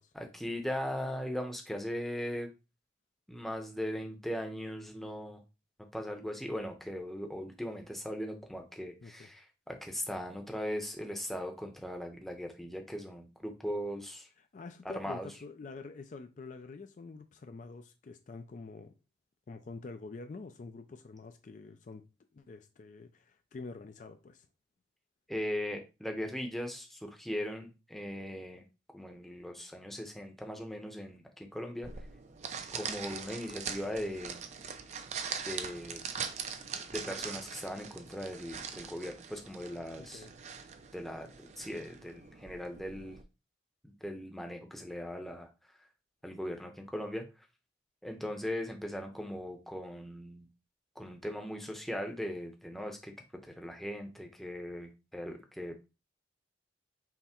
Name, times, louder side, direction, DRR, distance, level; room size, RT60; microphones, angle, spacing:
voice 1, 0.1-2.5 3.3-5.4 5.9-14.3 14.8-15.3 25.3-28.6 28.9-31.9 32.7-34.4 35.4-36.0 36.9-40.3 40.9-43.2 43.8-45.5 46.2-47.2 48.0-50.4 51.0-53.1 53.4-55.8, equal, ahead, 0.7 m, -39 dB
voice 2, 14.4-18.9 19.5-22.1 22.3-24.5 40.0-40.4, left 4 dB, 45° left, 0.3 m, -47 dB
sound 1, 31.8-43.2, right 6 dB, 40° right, 0.4 m, -42 dB
5.7 x 2.0 x 4.3 m
head